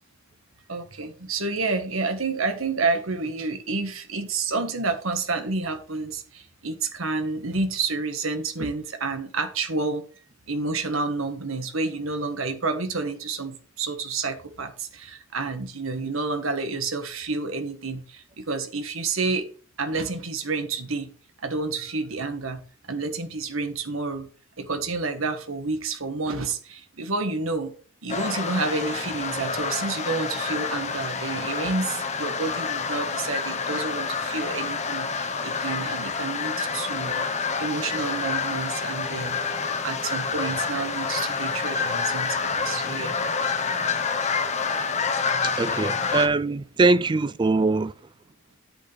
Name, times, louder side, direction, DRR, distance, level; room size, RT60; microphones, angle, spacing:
voice 1, 0.7-10.0 10.5-19.5 19.8-21.1 21.4-22.6 22.9-24.3 24.6-27.7 28.0-37.2 37.6-39.4 39.8-43.1 45.0-46.1, right 3 dB, 80° right, 1.6 m, -29 dB
sound 1, 28.1-46.3, left 5 dB, 35° left, 1.1 m, -28 dB
voice 2, 45.4-47.9, right 3 dB, 20° right, 0.3 m, -22 dB
9.7 x 8.5 x 3.4 m
head